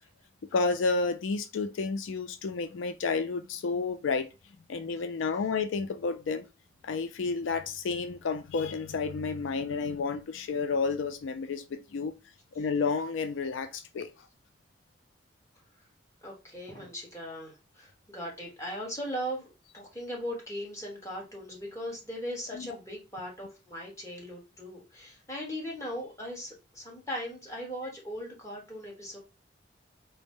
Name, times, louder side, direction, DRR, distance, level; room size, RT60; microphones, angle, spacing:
voice 1, 0.5-4.3 4.7-6.4 6.8-12.1 12.6-14.1 22.5-22.7, left 4 dB, 85° left, 0.4 m, -31 dB
voice 2, 16.2-19.5 19.7-29.2, equal, 15° left, 1.3 m, -39 dB
4.0 x 2.1 x 3.4 m
head